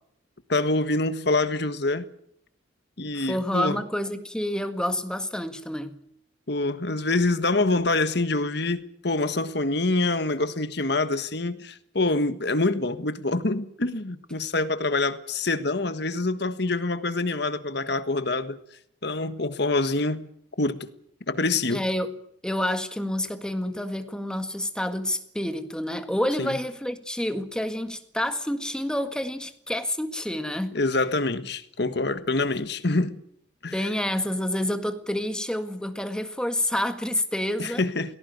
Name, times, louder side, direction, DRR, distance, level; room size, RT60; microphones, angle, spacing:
voice 1, 0.5-2.1 3.0-3.8 6.5-18.6 19.0-20.3 20.6-20.9 21.3-21.8 26.4-26.6 30.7-33.2 33.6-33.9 37.6-38.2, left 2 dB, 55° left, 1.5 m, -26 dB
voice 2, 3.1-6.0 21.7-22.1 22.4-30.8 33.7-37.8, left 1 dB, 5° left, 1.8 m, -28 dB
19.0 x 17.5 x 9.5 m
head